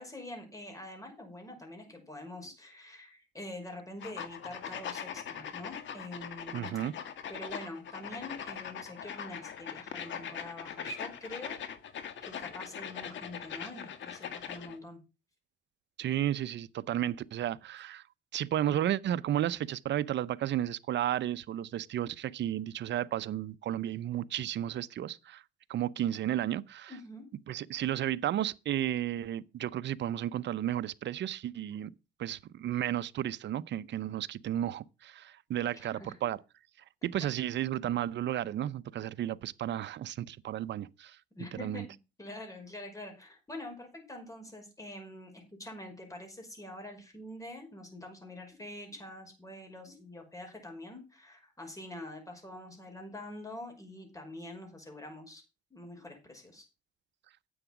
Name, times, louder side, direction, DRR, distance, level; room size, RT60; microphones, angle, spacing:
voice 1, 0.0-6.8 7.3-11.6 12.2-15.0 26.9-27.2 35.7-36.2 41.3-55.4 55.7-56.7, left 1 dB, 15° left, 5.6 m, -45 dB
sound 1, 4.0-14.8, left 8 dB, 70° left, 1.8 m, -41 dB
voice 2, 6.5-6.9 16.0-18.0 18.3-25.4 25.7-26.9 27.5-31.9 32.2-36.4 37.0-41.2 41.6-41.8, right 11 dB, 65° right, 0.7 m, -33 dB
9.8 x 8.0 x 6.0 m
cardioid pair, 90°, 20 cm